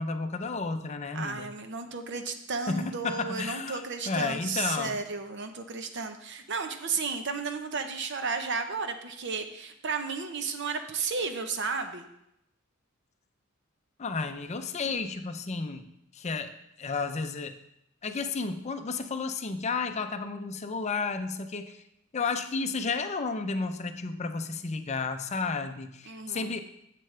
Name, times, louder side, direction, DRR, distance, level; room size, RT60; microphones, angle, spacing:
voice 1, 0.0-1.5 2.7-5.0 14.0-17.6 18.0-21.8 22.1-26.6, left 4 dB, 35° left, 8 dB, 0.5 m, -32 dB
voice 2, 1.1-12.0 26.1-26.6, right 4 dB, 60° right, 7 dB, 0.8 m, -33 dB
10.0 x 7.6 x 3.3 m, 0.79 s
head